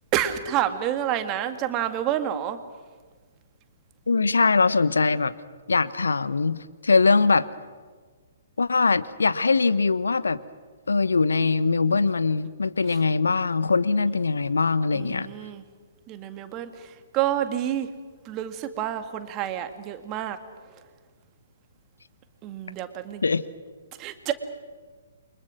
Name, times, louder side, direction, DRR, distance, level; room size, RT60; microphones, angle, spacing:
voice 1, 0.1-2.6 12.9-13.0 14.9-15.6 16.1-17.9 18.3-20.4 22.4-23.2 24.0-24.3, right 11 dB, 25° right, 8 dB, 2.0 m, -28 dB
voice 2, 4.1-5.3 5.7-7.5 8.6-10.4 10.9-15.3 23.2-23.4, left 4 dB, 75° left, 15 dB, 1.0 m, -22 dB
29.0 x 24.5 x 6.4 m, 1.5 s
figure-of-eight pair, 125°, 0 cm